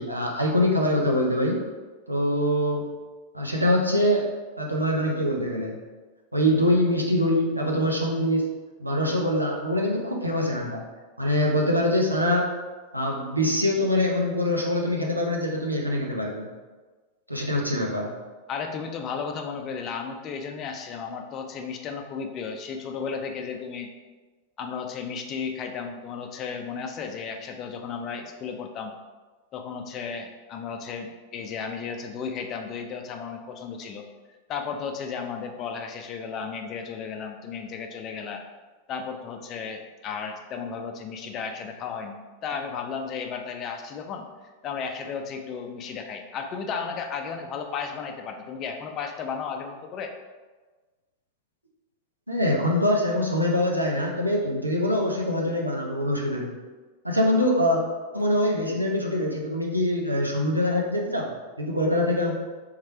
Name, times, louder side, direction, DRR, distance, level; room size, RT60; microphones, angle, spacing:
voice 1, 0.0-1.6 2.1-2.9 3.3-4.3 4.6-5.8 6.3-8.4 8.8-10.8 11.2-12.5 12.9-16.5 17.3-18.1 52.3-56.6 57.0-57.8 58.1-62.3, left 1 dB, 85° right, -1 dB, 0.7 m, -24 dB
voice 2, 18.5-23.9 24.6-29.0 29.5-34.1 34.5-38.4 38.9-44.3 44.6-50.1, left 6 dB, 35° left, 4 dB, 0.5 m, -34 dB
3.7 x 3.2 x 4.4 m, 1.3 s
figure-of-eight pair, 90°, 0 cm